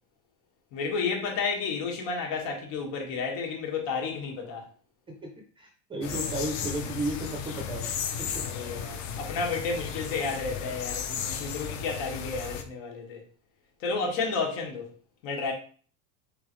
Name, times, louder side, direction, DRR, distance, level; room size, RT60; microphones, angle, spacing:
voice 1, 0.7-4.7 8.4-13.2 13.8-14.9 15.2-15.5, left 4 dB, 85° left, 1.7 m, -31 dB
voice 2, 5.6-7.9 8.2-8.5, right 1 dB, 15° right, 0.4 m, -34 dB
sound 1, 6.0-12.6, left 7 dB, 50° left, 0.6 m, -34 dB
3.9 x 3.6 x 3.1 m
cardioid pair, 175°, 40 cm